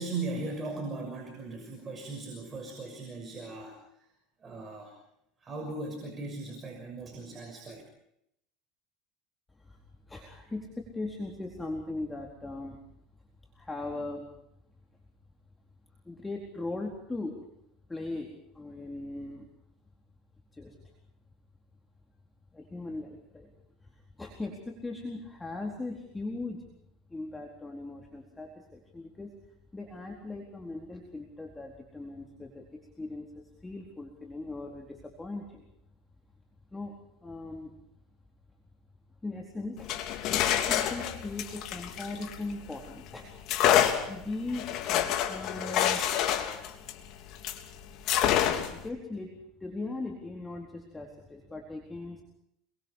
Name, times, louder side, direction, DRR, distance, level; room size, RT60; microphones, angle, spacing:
voice 1, 0.0-3.8 4.4-5.0 5.4-7.8, right 3 dB, 25° right, 1 dB, 6.4 m, -38 dB
voice 2, 10.1-12.8 13.5-14.2 16.1-17.4 17.9-18.3 18.5-19.5 20.5-20.8 22.5-23.5 23.8-26.6 27.1-29.3 29.7-32.6 33.0-33.3 33.6-35.6 36.7-36.9 37.2-37.8 39.2-39.9 40.3-43.3 44.1-44.7 45.2-46.0 48.7-52.2, left 2 dB, 10° left, 1 dB, 4.1 m, -39 dB
sound 1, 39.8-42.8 43.5-47.6 48.1-48.9, left 10 dB, 55° left, 3.3 m, -27 dB
30.0 x 23.5 x 4.8 m, 0.74 s
supercardioid pair, 130°, 0 cm